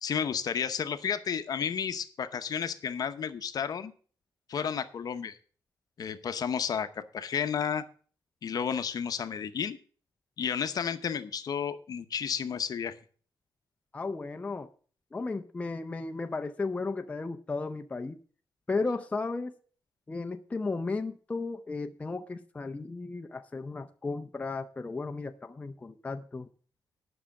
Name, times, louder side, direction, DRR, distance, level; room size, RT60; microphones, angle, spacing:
voice 1, 0.0-3.9 4.5-5.4 6.0-7.8 8.4-9.8 10.4-12.9, left 7 dB, 55° left, 0.8 m, -32 dB
voice 2, 13.9-14.7 15.1-18.2 18.7-19.5 20.1-26.5, left 3 dB, 20° left, 0.6 m, -34 dB
10.0 x 6.3 x 7.1 m
wide cardioid pair, 150°, 8 cm